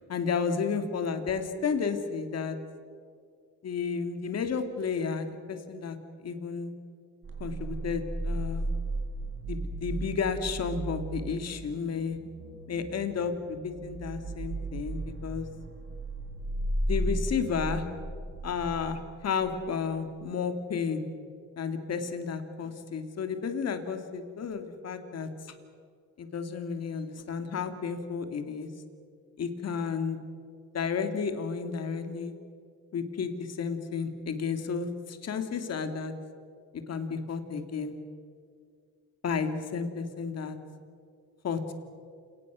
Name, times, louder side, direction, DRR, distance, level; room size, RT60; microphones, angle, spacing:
voice 1, 0.1-2.6 3.6-6.0 6.2-6.7 7.4-8.7 9.5-12.2 12.7-15.5 16.9-17.8 18.4-21.0 21.6-25.3 26.2-28.7 29.4-30.2 30.7-32.3 32.9-36.1 36.9-37.9 39.2-40.6 41.4-41.7, left 5 dB, 55° left, 7 dB, 2.5 m, -32 dB
sound 1, 7.2-19.9, right 1 dB, 40° right, 4.6 m, -35 dB
28.5 x 19.0 x 6.3 m, 2.2 s
cardioid pair, 90°, 30 cm